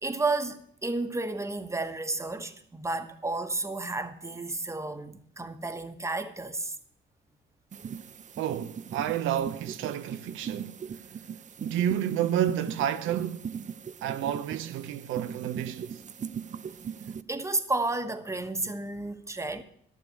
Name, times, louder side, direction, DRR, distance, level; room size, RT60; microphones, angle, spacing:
voice 1, 0.0-6.8 17.3-19.6, right 2 dB, 15° right, 1.2 m, -32 dB
sound 1, 7.7-17.2, right 7 dB, 40° right, 0.6 m, -39 dB
voice 2, 8.4-10.8 11.6-13.5 14.0-16.0, right 10 dB, 90° right, 0.7 m, -30 dB
12.5 x 6.9 x 8.4 m
cardioid pair, 90°, 20 cm